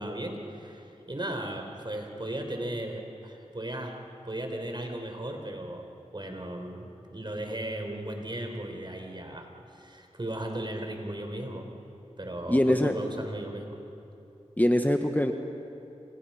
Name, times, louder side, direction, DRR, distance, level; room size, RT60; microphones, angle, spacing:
voice 1, 0.0-4.0 4.2-11.7 12.2-13.8, right 1 dB, 40° right, 4 dB, 4.2 m, -36 dB
voice 2, 12.5-13.0 14.6-15.3, left 1 dB, 15° left, 5 dB, 1.5 m, -23 dB
29.5 x 28.0 x 5.8 m, 2.8 s
cardioid pair, 40°, 12 cm